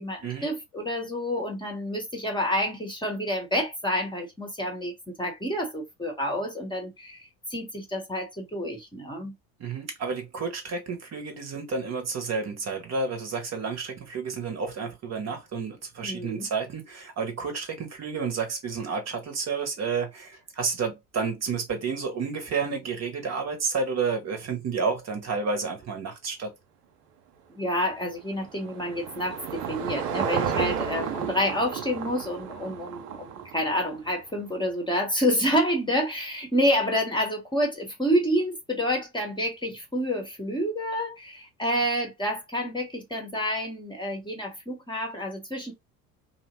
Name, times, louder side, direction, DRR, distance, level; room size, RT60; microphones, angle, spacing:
voice 1, 0.0-9.3 16.0-16.5 27.5-45.7, equal, 10° left, 1.0 m, -28 dB
voice 2, 9.6-26.5, right 5 dB, 35° right, 1.0 m, -30 dB
Car passing by / Engine, 27.7-34.2, right 8 dB, 75° right, 0.7 m, -33 dB
2.8 x 2.0 x 3.0 m
figure-of-eight pair, 65°, 48 cm